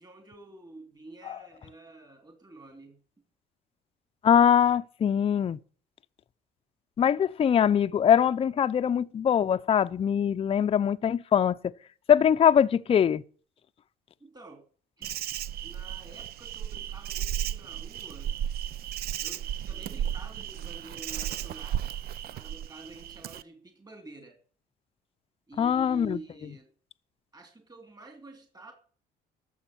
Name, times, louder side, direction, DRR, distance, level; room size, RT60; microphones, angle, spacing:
voice 1, 0.0-3.0 14.2-14.6 15.0-15.2 15.6-18.3 19.2-21.9 22.3-24.4 25.5-26.7 27.3-28.7, right 2 dB, 25° right, 3.2 m, -48 dB
voice 2, 4.2-5.6 7.0-11.6 12.1-13.2 25.6-26.2, left 8 dB, 35° left, 0.6 m, -22 dB
Insect, 15.0-23.4, right 10 dB, 65° right, 0.6 m, -34 dB
13.0 x 7.2 x 8.6 m
cardioid pair, 110°, 17 cm